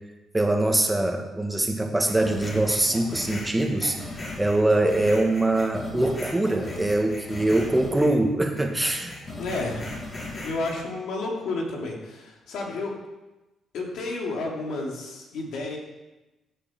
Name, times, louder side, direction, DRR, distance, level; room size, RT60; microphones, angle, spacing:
voice 1, 0.3-9.2, right 2 dB, 10° right, 3 dB, 1.8 m, -23 dB
sound 1, 2.1-8.2 8.6-10.7, left 2 dB, 35° left, 4.7 m, -37 dB
voice 2, 9.4-9.9 10.4-13.0 13.7-15.8, left 2 dB, 75° left, -1 dB, 3.2 m, -31 dB
16.0 x 8.4 x 4.7 m, 1.1 s
cardioid pair, 90°, 0 cm